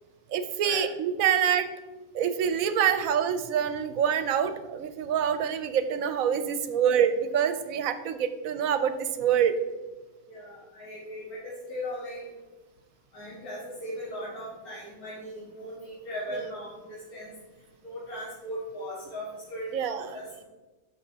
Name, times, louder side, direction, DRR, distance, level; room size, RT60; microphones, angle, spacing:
voice 1, 0.3-1.7 2.1-9.5 16.3-16.4 19.7-20.2, right 8 dB, 75° right, 11 dB, 1.0 m, -26 dB
voice 2, 10.3-12.3 13.1-17.3 17.8-20.4, equal, 90° left, -7 dB, 2.3 m, -38 dB
12.0 x 6.0 x 2.8 m, 1.2 s
omnidirectional pair, 1.5 m